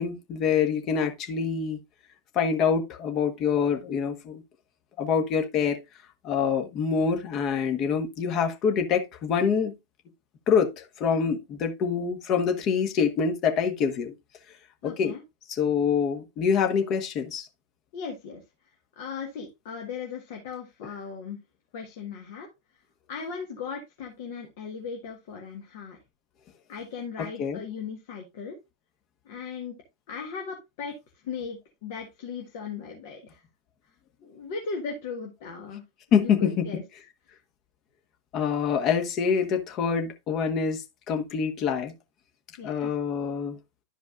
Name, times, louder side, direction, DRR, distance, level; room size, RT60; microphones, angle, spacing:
voice 1, 0.0-1.8 2.3-4.4 5.0-5.8 6.2-9.7 10.5-14.1 14.8-15.1 15.5-17.5 27.2-27.6 36.1-36.7 38.3-41.9 42.6-43.6, left 6 dB, 35° left, 1.4 m, -26 dB
voice 2, 14.8-15.2 17.9-18.4 18.9-21.4 21.7-22.5 23.1-26.0 26.7-28.6 29.2-29.8 30.1-30.9 31.2-33.4 34.2-35.8 36.2-36.8 42.6-42.9, left 5 dB, 50° left, 1.5 m, -37 dB
12.0 x 5.0 x 2.5 m
figure-of-eight pair, 90°, 0 cm